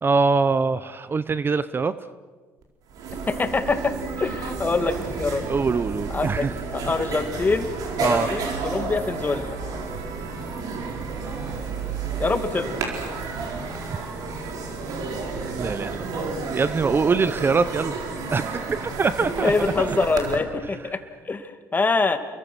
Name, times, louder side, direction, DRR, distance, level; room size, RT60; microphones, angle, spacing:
voice 1, 0.0-1.9 5.5-6.5 8.0-8.3 15.6-17.9 18.3-19.5 19.8-19.9, right 4 dB, 35° right, 14 dB, 0.9 m, -23 dB
sound 1, 2.6-2.7 2.9-20.4, right 4 dB, 65° right, 4.4 m, -31 dB
voice 2, 3.3-5.4 6.1-9.6 12.2-12.8 19.4-22.2, left 3 dB, 25° left, 8 dB, 2.4 m, -25 dB
29.5 x 22.5 x 6.3 m, 1.4 s
hypercardioid pair, 65°, 7 cm